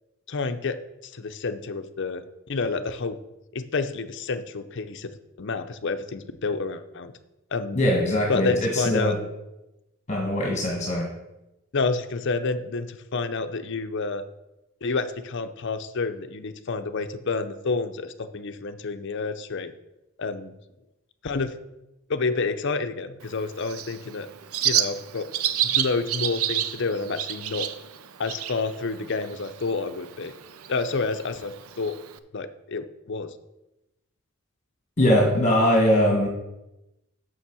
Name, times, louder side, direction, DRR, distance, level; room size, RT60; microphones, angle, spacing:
voice 1, 0.3-0.8 1.0-3.2 3.5-5.1 5.4-7.1 7.5-7.8 8.3-9.1 11.7-14.2 14.8-19.7 20.2-20.5 21.2-21.5 22.1-24.3 24.6-25.3 25.6-27.7 28.2-30.3 30.7-31.9 32.3-33.3, left 4 dB, 55° left, 9 dB, 0.6 m, -29 dB
voice 2, 7.7-9.2 10.1-11.1 35.0-36.3, left 1 dB, 35° left, -1 dB, 1.5 m, -21 dB
Bird, 23.2-32.2, right 11 dB, 90° right, 0.5 m, -30 dB
7.1 x 6.4 x 6.2 m, 0.94 s
head